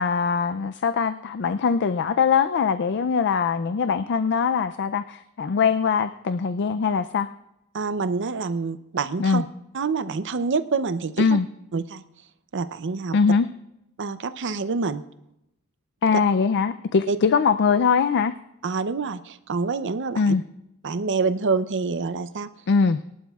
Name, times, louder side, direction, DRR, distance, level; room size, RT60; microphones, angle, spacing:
voice 1, 0.0-7.3 9.2-9.4 11.2-11.5 13.1-13.5 16.0-18.3 20.2-20.4 22.7-23.0, left 5 dB, 55° left, 12 dB, 0.4 m, -22 dB
voice 2, 7.7-9.4 9.7-11.3 11.7-12.0 12.5-13.2 14.0-15.0 17.1-17.2 18.6-20.3 20.8-22.5, right 4 dB, 55° right, 12 dB, 0.6 m, -26 dB
23.0 x 11.5 x 2.4 m, 0.86 s
head